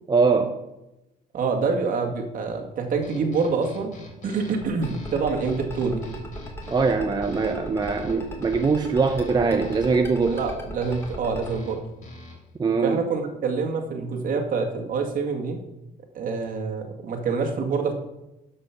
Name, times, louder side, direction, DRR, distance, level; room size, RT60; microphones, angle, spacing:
voice 1, 0.1-0.5 6.7-10.4 12.6-13.1, right 4 dB, 25° right, 5 dB, 0.8 m, -22 dB
voice 2, 1.3-6.1 10.3-11.8 12.8-15.6 16.1-17.9, right 4 dB, 55° right, 3 dB, 2.0 m, -26 dB
sound 1, 3.0-12.6, left 2 dB, 50° left, 3.4 m, -45 dB
sound 2, 4.6-11.5, equal, 15° left, 2.5 m, -37 dB
12.5 x 5.5 x 6.0 m, 0.94 s
cardioid pair, 110°, 17 cm